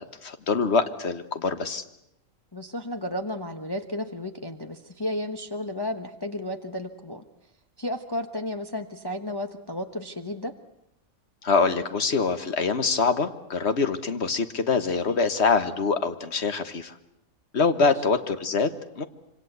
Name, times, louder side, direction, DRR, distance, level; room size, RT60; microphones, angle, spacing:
voice 1, 0.0-1.8 11.4-16.9 17.5-19.1, left 4 dB, 50° left, 10 dB, 1.7 m, -24 dB
voice 2, 2.5-7.2 7.8-10.5 17.8-17.9, left 1 dB, 20° left, 6 dB, 1.1 m, -33 dB
26.0 x 25.0 x 8.1 m, 0.83 s
omnidirectional pair, 1.5 m